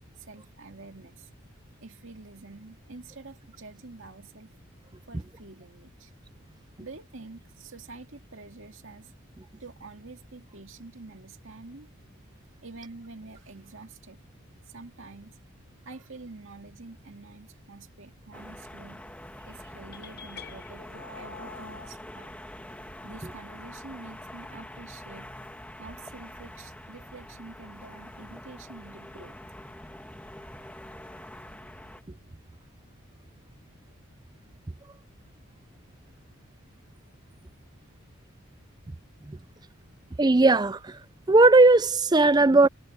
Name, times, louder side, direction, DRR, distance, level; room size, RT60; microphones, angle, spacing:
voice 1, 0.2-1.3 1.8-4.5 5.1-6.1 6.8-9.1 9.6-11.9 12.6-14.2 14.7-15.4 15.8-19.0 19.5-22.4 23.0-25.3 25.8-29.4, right 3 dB, 60° right, 2.4 m, -47 dB
sound 1, 18.3-32.0, left 1 dB, 5° left, 1.5 m, -45 dB
sound 2, 19.9-21.9, left 5 dB, 45° left, 1.2 m, -45 dB
voice 2, 40.2-41.0 41.3-42.7, right 2 dB, 20° right, 0.5 m, -18 dB
head